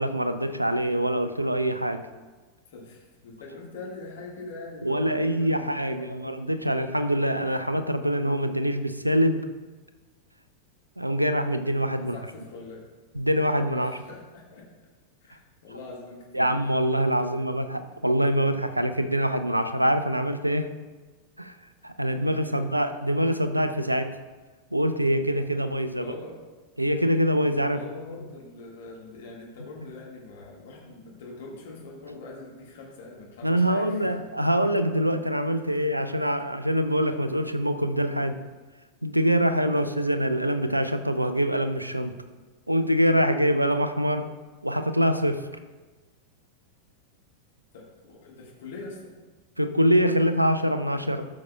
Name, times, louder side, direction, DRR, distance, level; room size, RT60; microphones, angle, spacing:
voice 1, 0.0-2.0 4.8-9.5 11.0-12.2 13.1-13.9 16.3-20.7 21.4-21.5 21.8-24.2 24.7-26.1 26.8-27.8 33.4-38.4 39.0-42.2 42.7-44.3 44.6-45.5 49.6-51.3, equal, 85° right, 10 dB, 0.4 m, -24 dB
voice 2, 2.7-6.3 12.0-12.9 13.7-14.6 15.2-16.5 17.3-17.4 22.1-22.7 25.9-26.3 27.6-34.2 35.7-35.9 47.7-49.1, left 3 dB, 55° left, -3 dB, 1.8 m, -43 dB
13.5 x 6.4 x 2.3 m, 1.3 s
figure-of-eight pair, 90°, 0 cm